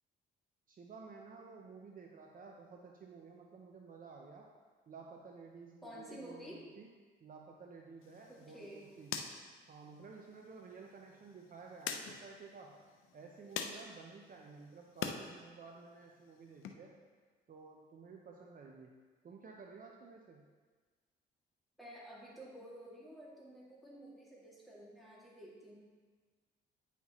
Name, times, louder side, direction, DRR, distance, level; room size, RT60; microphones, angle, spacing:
voice 1, 0.7-4.5 4.9-6.9 7.2-9.1 9.7-12.8 13.1-16.9 17.5-18.9 19.2-20.4, right 4 dB, 45° right, 0 dB, 0.7 m, -53 dB
voice 2, 5.8-6.6 8.3-8.9 21.8-25.8, equal, ahead, -7 dB, 2.3 m, -51 dB
sound 1, 8.0-15.2 15.6-16.7, left 7 dB, 85° left, 0.6 m, -46 dB
9.1 x 5.6 x 3.0 m, 1.5 s
cardioid pair, 90°, 20 cm